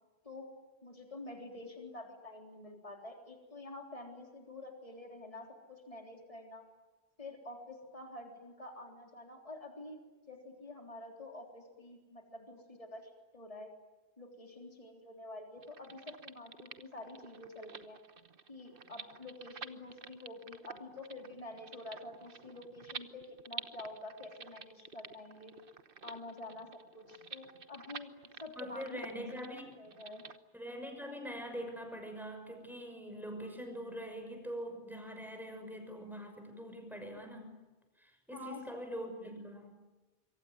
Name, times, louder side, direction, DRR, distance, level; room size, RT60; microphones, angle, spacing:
voice 1, 0.8-6.6 7.2-10.0 10.3-13.7 14.2-18.0 18.5-25.5 26.0-26.7 26.9-28.1 28.4-30.2 38.3-39.2, left 2 dB, 35° left, 2 dB, 3.7 m, -48 dB
sound 1, 15.6-30.4, right 5 dB, 60° right, 1.3 m, -50 dB
voice 2, 28.6-29.8 30.5-37.6 38.0-39.8, equal, ahead, 5 dB, 6.1 m, -43 dB
26.5 x 24.0 x 9.4 m, 1.2 s
omnidirectional pair, 1.0 m